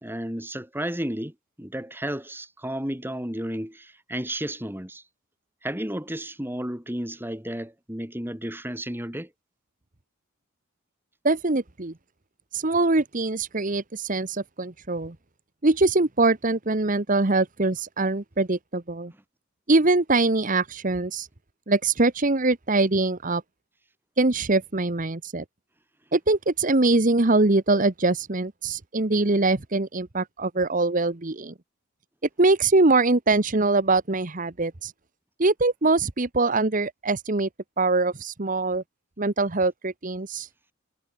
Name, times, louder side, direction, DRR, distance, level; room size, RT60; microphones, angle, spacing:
voice 1, 0.0-5.0 5.6-9.3, right 1 dB, 10° right, 3.6 m, -32 dB
voice 2, 11.2-11.9 12.5-15.1 15.6-19.1 19.7-21.3 21.7-23.4 24.2-25.4 26.1-31.5 32.4-34.9 35.4-37.5 37.8-38.8 39.2-40.5, right 2 dB, 40° right, 1.2 m, -23 dB
head